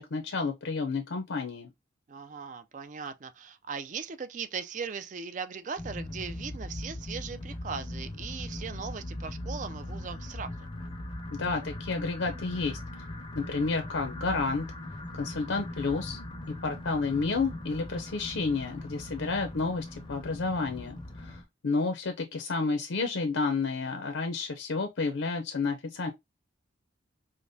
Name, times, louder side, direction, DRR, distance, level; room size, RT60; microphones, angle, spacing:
voice 1, 0.0-1.7 11.3-13.1 13.4-14.7 15.1-16.2 16.6-26.1, left 4 dB, 75° left, 0.6 m, -31 dB
voice 2, 2.1-10.5, right 5 dB, 40° right, 0.3 m, -39 dB
sound 1, 5.8-21.4, left 1 dB, 25° left, 0.5 m, -40 dB
5.0 x 2.1 x 2.6 m
head